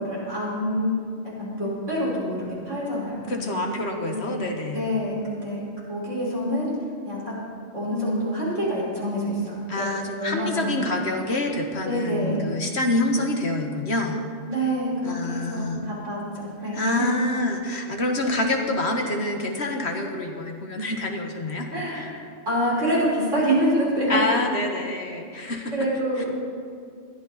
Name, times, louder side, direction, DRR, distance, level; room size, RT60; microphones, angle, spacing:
voice 1, 0.0-3.6 4.1-4.4 4.7-5.6 5.9-6.7 7.0-7.2 7.7-9.9 10.2-11.0 11.9-12.5 14.5-17.1 21.7-22.2 22.5-24.2 25.7-26.3, equal, 70° right, -6 dB, 5.5 m, -26 dB
voice 2, 3.3-4.8 9.7-14.2 15.0-15.8 16.7-21.7 24.1-25.7 26.2-26.3, left 2 dB, 60° left, 2 dB, 1.8 m, -27 dB
21.0 x 13.5 x 4.2 m, 2.2 s
omnidirectional pair, 1.3 m